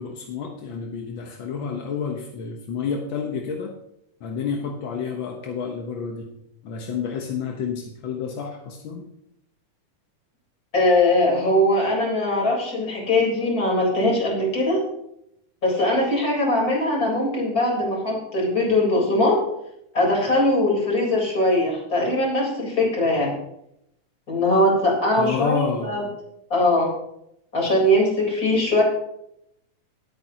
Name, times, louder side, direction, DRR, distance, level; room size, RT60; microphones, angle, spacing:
voice 1, 0.0-3.7 4.2-6.3 6.6-9.1 25.2-25.9, left 6 dB, 60° left, 1 dB, 1.3 m, -29 dB
voice 2, 10.7-14.8 15.6-19.4 19.9-23.3 24.3-26.0 26.5-26.9 27.5-28.8, left 1 dB, 30° left, -3 dB, 4.2 m, -21 dB
19.5 x 8.7 x 2.9 m, 0.79 s
omnidirectional pair, 3.5 m